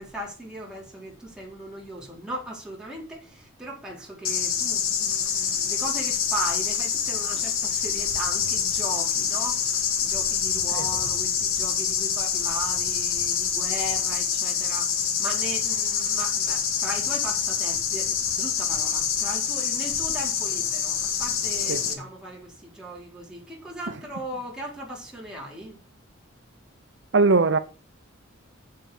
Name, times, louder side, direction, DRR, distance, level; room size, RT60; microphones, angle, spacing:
voice 1, 0.0-25.8, right 1 dB, 5° right, 4.4 m, -37 dB
sound 1, 4.2-21.9, left 7 dB, 85° left, 2.1 m, -26 dB
voice 2, 27.1-27.6, right 3 dB, 60° right, 0.7 m, -20 dB
8.1 x 7.8 x 6.5 m
head